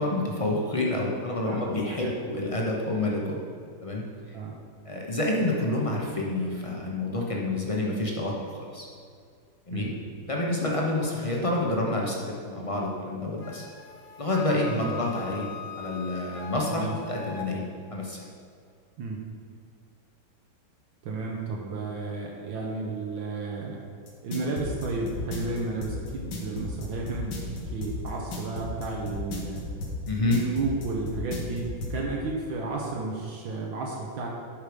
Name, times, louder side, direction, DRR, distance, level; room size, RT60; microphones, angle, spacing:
voice 1, 0.0-3.4 3.8-4.0 4.9-8.9 9.7-9.9 10.3-13.6 14.2-15.5 15.8-17.6 17.9-18.2 30.1-30.4, left 2 dB, 35° left, -2 dB, 0.5 m, -28 dB
voice 2, 1.5-2.2 4.3-4.6 9.7-9.9 14.6-15.0 16.6-16.9 19.0-19.2 21.0-23.8 24.2-29.6 30.3-34.3, right 3 dB, 75° right, -2 dB, 1.7 m, -33 dB
Wind instrument woodwind instrument, 13.4-17.5, left 6 dB, 55° left, 1.0 m, -41 dB
sound 1, 24.1-32.0, left 3 dB, 85° left, 2.1 m, -35 dB
11.0 x 4.9 x 5.2 m, 2.2 s
omnidirectional pair, 2.2 m